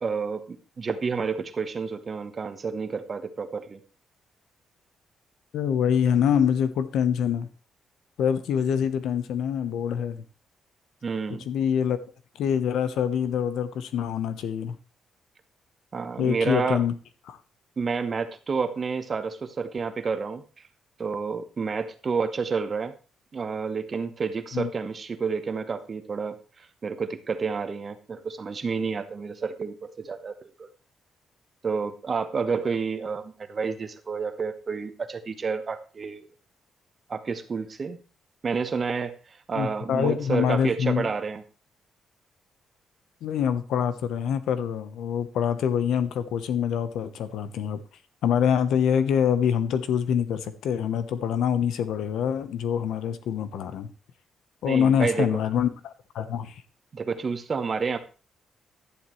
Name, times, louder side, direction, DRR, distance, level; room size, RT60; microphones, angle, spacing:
voice 1, 0.0-3.8 11.0-11.5 15.9-16.8 17.8-20.4 21.0-22.9 23.3-30.7 31.6-36.2 37.1-38.0 38.4-41.4 54.6-55.3 56.9-58.0, right 5 dB, 40° right, 9 dB, 1.2 m, -30 dB
voice 2, 5.5-7.5 8.2-10.2 11.5-12.0 12.4-14.8 16.2-16.9 17.3-17.4 24.5-24.7 39.5-41.1 43.2-47.8 48.2-53.9 54.6-56.6, left 8 dB, 85° left, 12 dB, 1.0 m, -25 dB
11.5 x 10.5 x 3.2 m, 0.35 s
cardioid pair, 95°, 0 cm